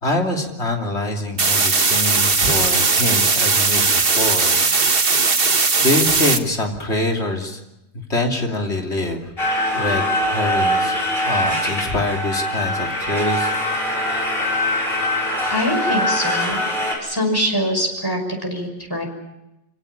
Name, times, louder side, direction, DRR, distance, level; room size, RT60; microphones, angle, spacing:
voice 1, 0.0-5.1 5.8-7.6 7.9-9.3 9.7-11.0 11.2-13.5 13.8-14.0, left 2 dB, 85° left, 2 dB, 3.4 m, -24 dB
sound 1, 1.4-6.4, right 4 dB, 60° right, 1.7 m, -18 dB
sound 2, 9.4-16.9, left 1 dB, 60° left, 5.6 m, -22 dB
voice 2, 15.5-16.6 17.0-19.1, equal, 20° left, 2 dB, 5.8 m, -23 dB
26.5 x 17.0 x 8.7 m, 0.93 s
omnidirectional pair, 1.1 m